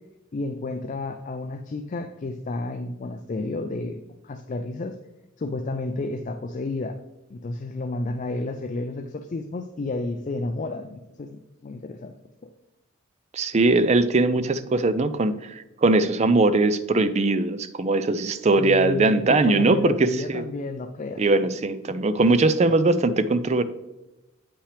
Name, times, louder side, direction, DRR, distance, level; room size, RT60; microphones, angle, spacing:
voice 1, 0.3-5.0 5.4-7.0 7.3-12.1 18.6-21.2, left 2 dB, 35° left, 7 dB, 0.4 m, -31 dB
voice 2, 13.3-20.4 21.2-23.6, right 2 dB, 30° right, 12 dB, 0.4 m, -21 dB
8.6 x 5.7 x 3.3 m, 0.99 s
head